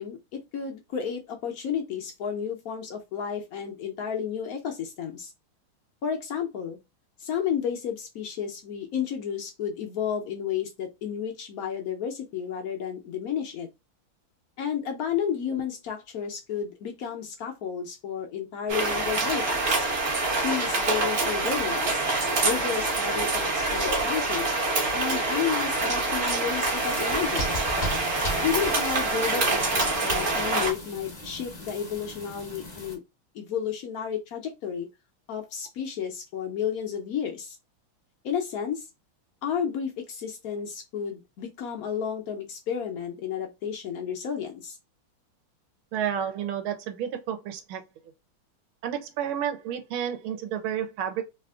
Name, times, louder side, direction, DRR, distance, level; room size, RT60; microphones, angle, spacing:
voice 1, 0.0-5.3 6.0-6.8 7.2-13.7 14.6-19.8 20.4-22.0 22.4-24.5 24.9-27.6 28.4-33.0 33.3-34.9 35.3-37.6 38.2-38.9 39.4-44.8, left 8 dB, 70° left, 0.8 m, -32 dB
sound 1, 18.7-30.7, right 3 dB, 45° right, 0.9 m, -26 dB
sound 2, 26.7-33.0, left 1 dB, 40° left, 0.6 m, -36 dB
voice 2, 45.9-47.8 48.8-51.2, right 9 dB, 80° right, 1.4 m, -31 dB
3.4 x 2.4 x 2.3 m
omnidirectional pair, 2.3 m